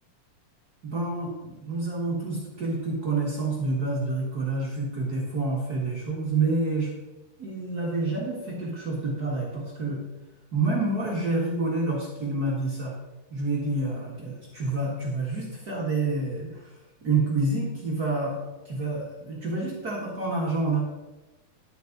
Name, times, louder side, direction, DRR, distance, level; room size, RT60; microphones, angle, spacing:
voice 1, 0.8-6.9 7.4-10.0 10.5-12.9 13.3-18.4 18.6-20.8, right 3 dB, 50° right, -4 dB, 1.1 m, -28 dB
11.0 x 8.0 x 4.0 m, 1.1 s
omnidirectional pair, 4.6 m